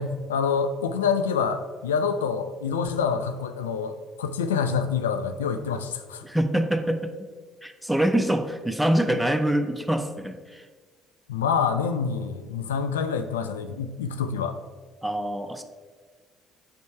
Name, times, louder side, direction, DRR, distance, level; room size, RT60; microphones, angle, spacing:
voice 1, 0.0-6.3 11.3-14.5, left 6 dB, 75° left, 9 dB, 0.3 m, -27 dB
voice 2, 6.2-7.3 7.6-10.7 15.0-15.6, right 1 dB, ahead, 7 dB, 0.6 m, -25 dB
6.7 x 5.2 x 3.3 m, 1.5 s
figure-of-eight pair, 50°, 0 cm